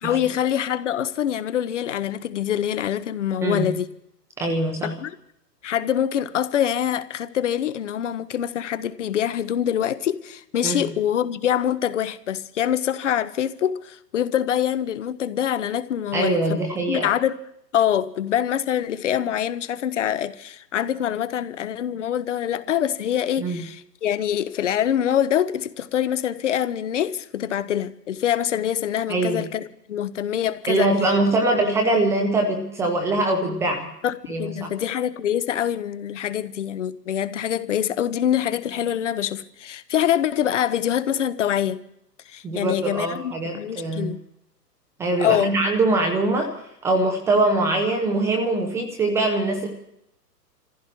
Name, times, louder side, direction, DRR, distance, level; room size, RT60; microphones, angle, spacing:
voice 1, 0.0-3.9 4.8-5.2 5.6-16.6 16.9-17.4 17.7-30.9 34.0-41.8 42.3-44.2 45.2-45.5, left 10 dB, 45° left, 1.0 m, -25 dB
voice 2, 4.4-4.9 10.6-10.9 16.1-17.1 23.4-23.6 29.1-29.4 30.7-33.9 34.3-34.7 42.4-44.1 45.0-46.5 46.8-49.7, right 2 dB, 5° right, 0.6 m, -23 dB
28.0 x 15.0 x 3.0 m
figure-of-eight pair, 120°, 49 cm